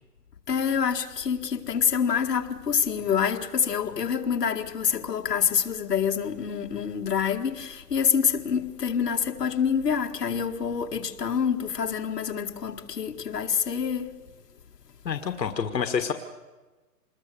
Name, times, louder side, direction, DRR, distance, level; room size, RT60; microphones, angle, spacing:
voice 1, 0.5-14.2, left 7 dB, 70° left, 2.0 m, -26 dB
voice 2, 15.1-16.1, left 7 dB, 85° left, 1.7 m, -27 dB
26.5 x 21.0 x 6.9 m
hypercardioid pair, 165°, 49 cm